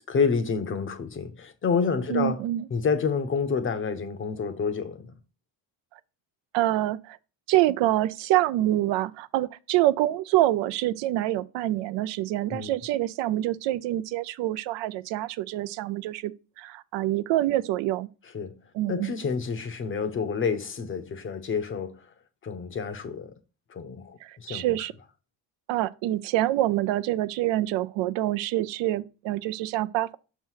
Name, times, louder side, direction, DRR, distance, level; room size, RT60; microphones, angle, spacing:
voice 1, 0.0-2.4 2.7-5.2 12.5-12.7 18.3-18.6 18.9-22.1 22.4-23.3 23.7-24.6, left 5 dB, 30° left, 0.6 m, -28 dB
voice 2, 2.1-2.7 6.5-7.2 7.5-16.3 16.6-18.1 18.7-19.1 24.2-24.9 25.7-30.2, right 15 dB, 85° right, 0.5 m, -26 dB
6.2 x 3.0 x 5.6 m
cardioid pair, 145°, 43 cm